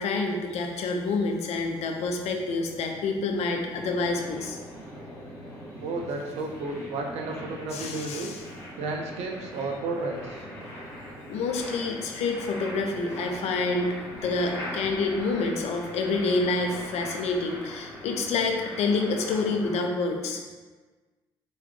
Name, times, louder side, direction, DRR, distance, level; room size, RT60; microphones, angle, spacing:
voice 1, 0.0-4.6 7.7-8.4 11.3-20.4, left 3 dB, 60° left, 3 dB, 0.5 m, -28 dB
sound 1, 1.2-19.9, equal, 75° left, 0.8 m, -41 dB
voice 2, 5.8-8.3 8.8-10.4, right 3 dB, 60° right, 2 dB, 0.5 m, -32 dB
3.2 x 2.3 x 3.2 m, 1.3 s
hypercardioid pair, 45°, 13 cm